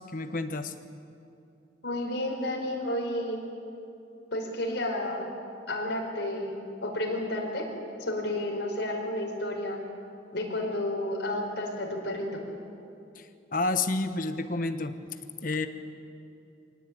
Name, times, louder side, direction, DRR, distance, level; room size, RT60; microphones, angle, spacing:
voice 1, 0.1-0.7 13.1-13.3 13.5-15.0 15.4-15.7, left 3 dB, 45° left, 9 dB, 1.2 m, -29 dB
voice 2, 1.8-3.4 4.3-5.2 5.7-7.7 8.1-9.8 10.3-12.4, left 1 dB, 65° left, 0 dB, 5.1 m, -31 dB
24.5 x 18.0 x 9.0 m, 2.7 s
head